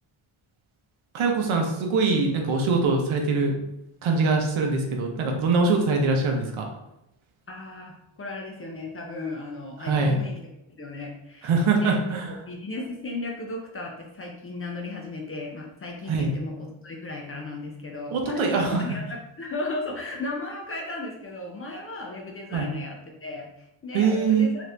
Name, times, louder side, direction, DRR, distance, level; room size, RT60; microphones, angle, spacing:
voice 1, 1.1-3.5 4.0-6.7 9.8-10.2 11.4-12.3 16.1-16.3 18.1-18.8 22.5-22.7 23.9-24.5, right 4 dB, 80° right, 2 dB, 0.8 m, -23 dB
voice 2, 7.5-10.4 10.8-11.5 11.8-12.2 12.4-19.0 19.4-23.0 23.2-24.7, left 2 dB, 30° left, 0 dB, 0.4 m, -35 dB
2.8 x 2.5 x 3.2 m, 0.86 s
wide cardioid pair, 155°, 48 cm